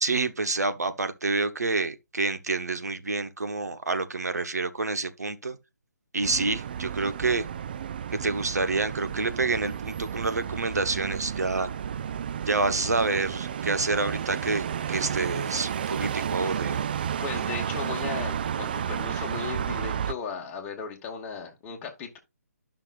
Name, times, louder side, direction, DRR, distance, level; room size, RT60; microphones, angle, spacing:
voice 1, 0.0-5.6 6.1-7.4 8.1-11.7 12.5-16.8, right 3 dB, 70° right, 1.1 m, -28 dB
sound 1, 6.2-20.1, right 8 dB, 35° right, 0.3 m, -32 dB
voice 2, 17.2-22.2, left 6 dB, 15° left, 1.6 m, -36 dB
11.5 x 5.8 x 2.5 m
figure-of-eight pair, 145°, 9 cm